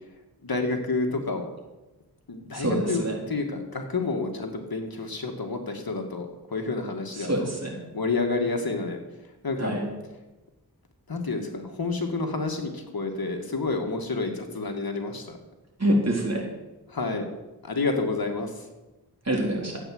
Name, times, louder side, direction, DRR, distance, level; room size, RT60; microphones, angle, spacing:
voice 1, 0.4-1.5 2.3-7.5 7.9-9.0 9.4-9.8 11.1-15.4 16.9-17.3 17.6-18.7, left 3 dB, 65° left, 3 dB, 2.1 m, -29 dB
voice 2, 2.5-3.2 7.2-7.7 9.6-9.8 15.8-16.4 19.3-19.8, right 1 dB, 40° right, -1 dB, 3.9 m, -26 dB
13.5 x 8.8 x 8.0 m, 1.1 s
wide cardioid pair, 90°, 39 cm